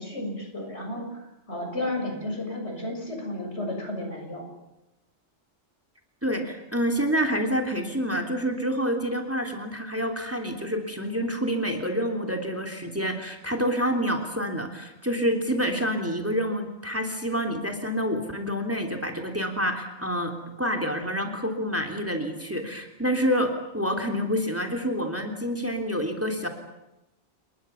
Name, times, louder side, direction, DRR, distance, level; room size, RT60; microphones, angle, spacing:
voice 1, 0.0-4.4, left 1 dB, 70° left, 3 dB, 7.0 m, -33 dB
voice 2, 6.2-26.5, equal, 10° right, 4 dB, 3.2 m, -28 dB
29.0 x 22.5 x 7.1 m, 0.93 s
omnidirectional pair, 1.2 m